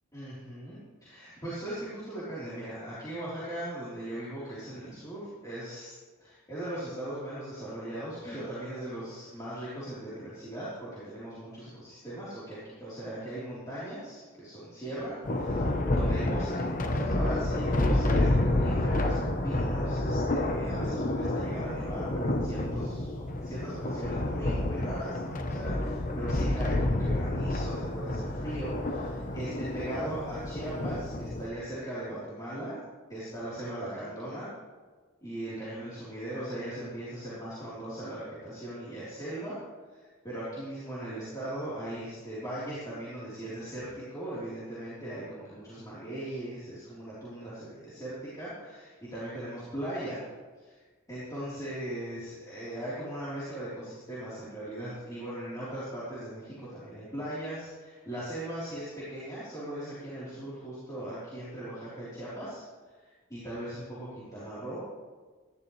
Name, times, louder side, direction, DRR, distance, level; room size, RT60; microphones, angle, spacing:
voice 1, 0.1-5.9 6.2-32.8 33.1-34.5 35.2-39.6 39.9-50.2 50.6-50.8 51.1-62.6 63.0-64.8, right 1 dB, 15° left, -11 dB, 3.9 m, -39 dB
Thunder, 15.2-31.5, left 1 dB, 40° left, 1.0 m, -29 dB
17.5 x 12.0 x 3.3 m, 1.4 s
head